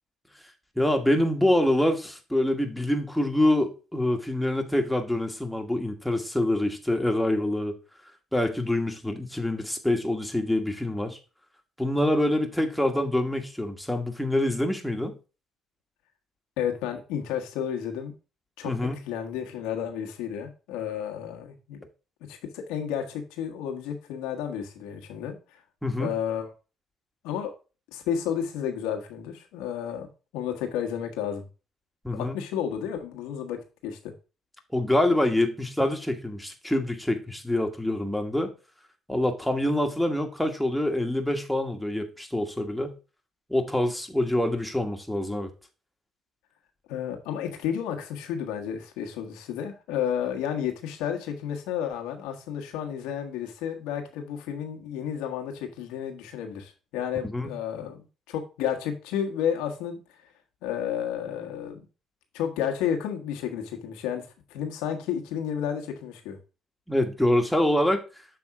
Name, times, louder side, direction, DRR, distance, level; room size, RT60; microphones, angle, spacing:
voice 1, 0.8-7.8 8.3-11.2 11.8-15.1 18.6-19.0 25.8-26.1 32.0-32.4 34.7-38.5 39.1-42.9 43.5-45.5 57.2-57.5 66.9-68.0, left 1 dB, ahead, 4 dB, 1.4 m, -25 dB
voice 2, 16.6-18.1 18.6-18.7 19.1-21.9 22.3-25.6 26.0-26.5 27.2-27.5 27.9-30.1 30.3-31.5 32.1-33.6 33.8-34.0 46.9-60.0 60.6-61.9 62.3-66.4, left 9 dB, 90° left, 3 dB, 1.3 m, -31 dB
6.9 x 3.5 x 4.8 m, 0.32 s
supercardioid pair, 75°, 0 cm